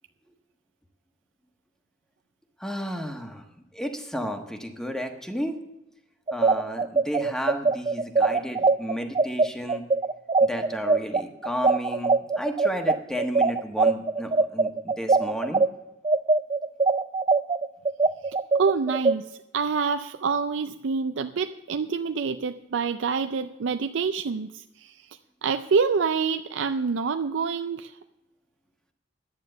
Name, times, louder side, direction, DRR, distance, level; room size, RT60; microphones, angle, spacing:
voice 1, 2.6-3.4 3.7-5.6 6.3-9.9 10.4-15.7, equal, 5° left, 4 dB, 1.2 m, -32 dB
sound 1, 6.3-15.7 16.0-19.1, right 3 dB, 30° right, 0.4 m, -21 dB
voice 2, 18.2-28.0, right 5 dB, 85° right, 8 dB, 0.5 m, -27 dB
11.5 x 9.3 x 6.7 m, 0.94 s
head